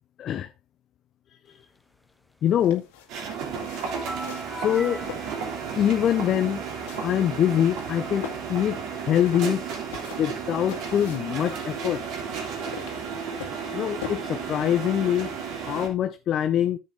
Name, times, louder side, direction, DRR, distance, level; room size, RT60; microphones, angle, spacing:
voice 1, 0.2-0.5 2.4-2.8 4.5-5.0 5.7-6.6 7.0-9.7 10.2-12.0 13.7-15.3 15.6-16.8, left 10 dB, 50° left, 0.6 m, -24 dB
sound 1, 2.4-14.1, left 10 dB, 80° left, 2.0 m, -43 dB
sound 2, 3.1-15.9, right 6 dB, 60° right, 3.2 m, -33 dB
sound 3, 3.8-7.4, equal, 5° left, 1.2 m, -41 dB
10.0 x 7.6 x 3.4 m
hypercardioid pair, 75°, 0 cm